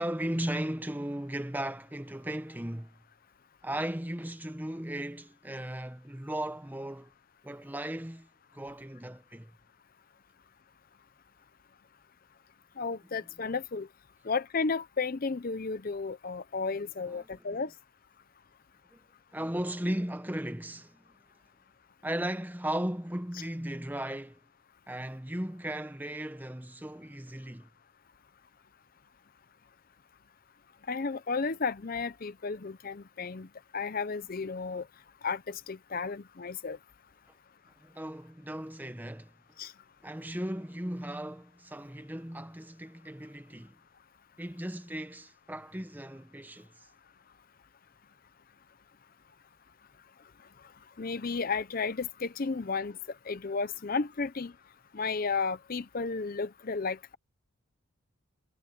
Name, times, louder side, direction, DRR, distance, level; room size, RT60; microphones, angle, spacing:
voice 1, 0.0-3.0 3.6-7.1 7.4-8.3 8.5-9.5 17.1-17.6 18.9-19.0 19.3-21.1 22.0-24.4 24.9-27.7 37.8-39.3 40.0-43.8 44.4-46.9, right 1 dB, 10° right, 0.9 m, -36 dB
voice 2, 12.8-13.9 14.2-17.7 30.9-33.5 33.7-34.9 35.2-36.8 39.6-39.7 51.0-53.0 53.3-54.5 54.9-57.0, left 4 dB, 40° left, 0.6 m, -33 dB
head